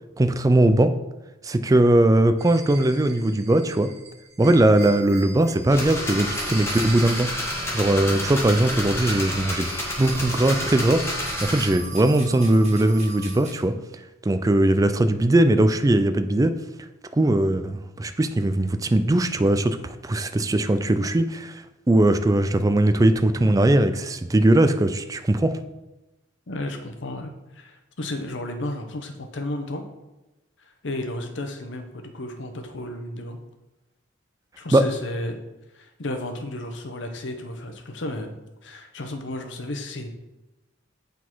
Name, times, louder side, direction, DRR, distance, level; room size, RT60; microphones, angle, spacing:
voice 1, 0.2-0.9 1.4-3.9 4.4-7.4 7.7-9.7 10.0-13.7 14.3-16.6 17.1-21.6 21.9-25.6 34.7-34.9, right 1 dB, 20° right, 10 dB, 0.3 m, -20 dB
sound 1, 2.4-13.6, right 3 dB, 35° right, 1.5 m, -42 dB
sound 2, 5.7-11.7, equal, 15° left, 1.3 m, -29 dB
voice 2, 26.5-29.9 30.8-33.4 34.6-35.4 35.7-38.3 38.6-40.1, left 1 dB, 65° left, 5 dB, 0.9 m, -33 dB
8.3 x 4.0 x 4.6 m, 1.0 s
head